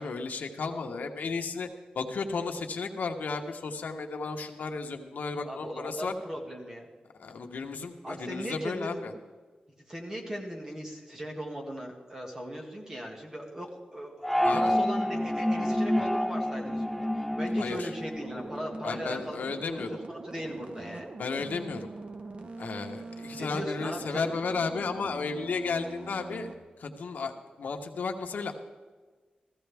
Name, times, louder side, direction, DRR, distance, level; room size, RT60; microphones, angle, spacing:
voice 1, 0.0-1.7 1.9-6.1 7.2-9.1 14.4-14.8 17.6-17.9 18.8-20.0 21.2-21.9 22.6-26.5 26.8-27.3 27.6-28.6, left 4 dB, 80° left, 4 dB, 1.1 m, -33 dB
voice 2, 5.4-6.9 8.0-9.2 9.9-19.8 20.1-21.1 23.3-24.3, equal, 20° right, 0 dB, 1.8 m, -38 dB
sound 1, 14.2-18.8, left 1 dB, 5° left, 0.3 m, -28 dB
sound 2, 18.2-26.6, right 2 dB, 45° right, 0.9 m, -43 dB
15.5 x 15.0 x 3.5 m, 1.4 s
wide cardioid pair, 165°, 3 cm